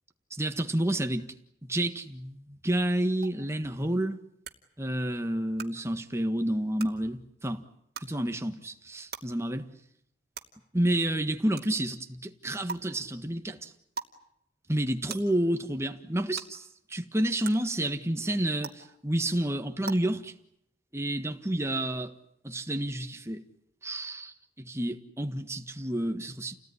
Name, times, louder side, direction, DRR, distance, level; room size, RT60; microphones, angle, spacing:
voice 1, 0.3-1.3 1.6-4.2 4.8-7.6 8.0-9.7 10.7-13.7 14.7-20.3 20.9-22.1 22.4-23.4 23.8-26.6, right 1 dB, 15° right, 1.6 m, -30 dB
sound 1, 3.2-3.3 4.4-4.5 5.6-5.7 6.8-6.9 7.9-8.1 9.1-9.2 10.3-10.4 11.6-11.7 12.7-12.8 13.9-14.1 15.1-15.2 16.3-16.4 17.4-17.5 18.6-18.7 19.8-19.9, right 6 dB, 60° right, 2.7 m, -37 dB
29.5 x 18.5 x 10.0 m
head